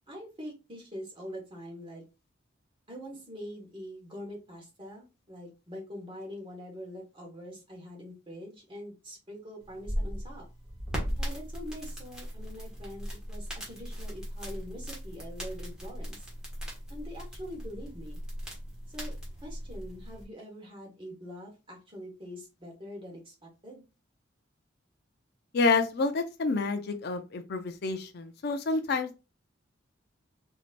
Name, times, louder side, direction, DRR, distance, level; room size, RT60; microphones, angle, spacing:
voice 1, 0.1-2.0 2.9-10.4 11.2-16.2 16.9-18.2 18.9-19.1 19.4-23.8, equal, 25° right, 1.4 m, -44 dB
sound 1, 9.6-20.2, equal, 5° right, 1.5 m, -38 dB
voice 2, 25.5-29.2, left 3 dB, 55° left, 0.4 m, -28 dB
4.4 x 2.7 x 2.5 m
head